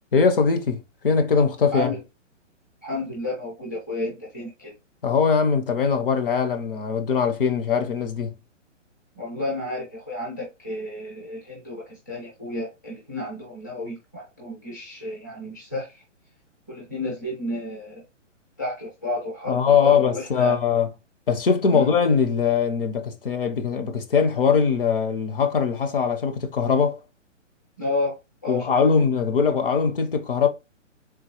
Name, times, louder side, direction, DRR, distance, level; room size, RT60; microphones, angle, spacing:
voice 1, 0.1-1.9 5.0-8.3 19.5-20.9 21.3-27.0 28.5-30.5, left 6 dB, 45° left, 0.7 m, -21 dB
voice 2, 2.8-4.7 9.2-16.0 16.7-18.0 18.6-20.6 21.7-21.9 27.8-28.7, left 2 dB, 15° left, 0.4 m, -31 dB
3.8 x 2.7 x 2.9 m
hypercardioid pair, 165°, 37 cm